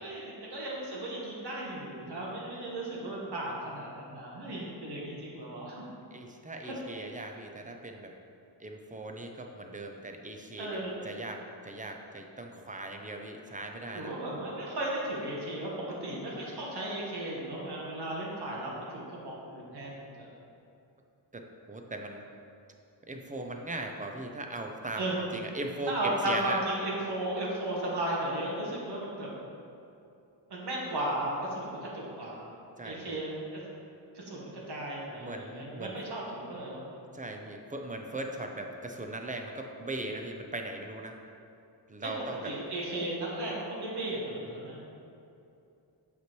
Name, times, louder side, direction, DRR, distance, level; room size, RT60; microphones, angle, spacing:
voice 1, 0.0-5.8 6.6-6.7 10.6-11.0 13.9-20.3 25.0-25.2 25.9-29.3 30.5-32.5 32.8-33.3 34.1-36.8 42.0-42.1 42.4-44.8, right 1 dB, 60° right, -4 dB, 1.4 m, -35 dB
voice 2, 6.1-8.1 8.6-14.1 21.3-22.3 23.1-26.6 32.8-33.2 35.2-35.9 37.1-41.2 41.9-42.5, right 2 dB, 20° right, 3 dB, 0.4 m, -39 dB
6.0 x 5.6 x 3.0 m, 2.7 s
cardioid pair, 100°, 46 cm